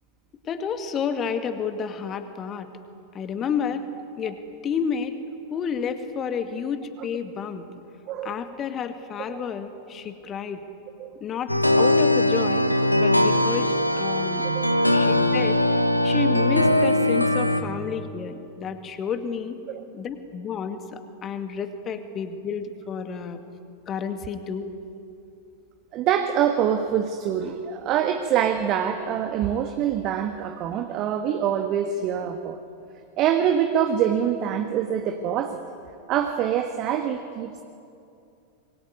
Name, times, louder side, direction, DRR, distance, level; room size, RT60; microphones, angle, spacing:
voice 1, 0.4-2.7 3.1-3.8 4.2-4.4 4.6-5.2 5.5-7.7 8.2-10.6 11.2-14.5 14.9-19.6 19.9-23.4 23.9-24.7, left 6 dB, 30° left, 8 dB, 2.2 m, -30 dB
voice 2, 8.1-8.4 9.3-9.5 11.0-11.1 14.5-14.7 19.7-19.8 25.9-32.6 33.2-35.6 36.1-37.6, right 9 dB, 35° right, 7 dB, 1.5 m, -25 dB
sound 1, 11.5-17.6, left 1 dB, 90° left, 1.4 m, -20 dB
26.0 x 22.5 x 9.4 m, 2.6 s
figure-of-eight pair, 90°, 0 cm